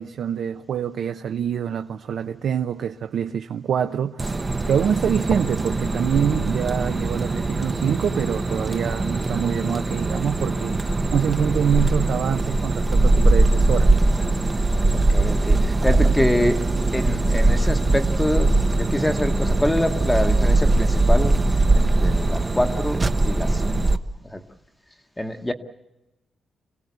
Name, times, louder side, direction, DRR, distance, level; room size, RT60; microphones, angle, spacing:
voice 1, 0.0-4.4 4.7-10.8 11.1-13.9, right 8 dB, 60° right, 0.8 m, -25 dB
sound 1, 4.2-24.0, right 2 dB, 20° right, 0.9 m, -21 dB
voice 2, 14.9-16.6 16.9-21.4 21.7-23.8 24.2-24.4 25.2-25.5, left 1 dB, 5° left, 1.1 m, -25 dB
27.5 x 17.5 x 8.1 m
wide cardioid pair, 160°, 0 cm